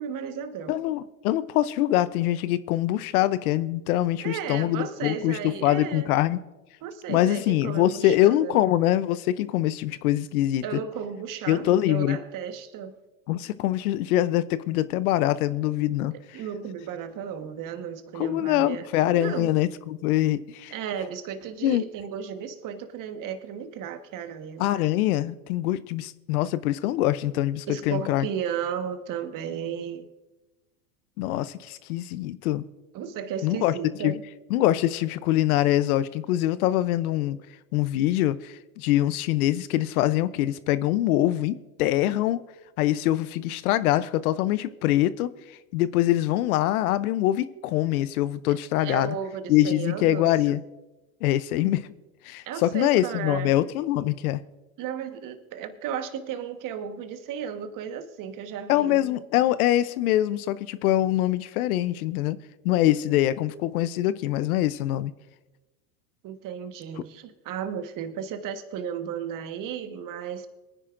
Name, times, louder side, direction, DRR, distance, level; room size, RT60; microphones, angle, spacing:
voice 1, 0.0-0.7 4.2-6.1 6.8-8.5 10.6-12.9 16.1-18.9 19.1-19.6 20.7-24.7 27.7-30.1 32.9-34.2 48.8-50.3 52.4-53.6 54.8-59.0 66.2-70.5, right 8 dB, 45° right, 8 dB, 1.4 m, -34 dB
voice 2, 0.7-6.4 7.1-10.6 11.5-12.2 13.3-16.1 18.1-20.7 21.6-21.8 24.6-28.3 31.2-32.6 33.4-33.7 34.0-34.2 34.5-37.4 37.7-42.4 42.8-45.3 45.7-49.1 49.5-50.6 51.2-51.8 52.3-54.4 58.7-62.4 62.6-65.1, left 14 dB, 75° left, 17 dB, 0.7 m, -24 dB
23.5 x 9.9 x 2.5 m, 1.1 s
hypercardioid pair, 100°, 44 cm